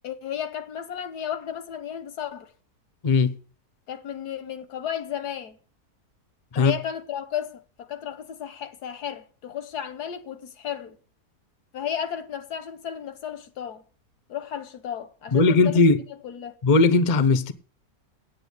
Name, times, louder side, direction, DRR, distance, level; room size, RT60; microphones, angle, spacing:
voice 1, 0.0-2.5 3.9-5.6 6.5-11.0 11.7-13.8 14.3-15.8 16.2-16.6, left 9 dB, 85° left, 1.7 m, -33 dB
voice 2, 15.3-16.0 16.6-17.5, left 3 dB, 35° left, 0.7 m, -18 dB
8.9 x 8.9 x 8.2 m
omnidirectional pair, 1.7 m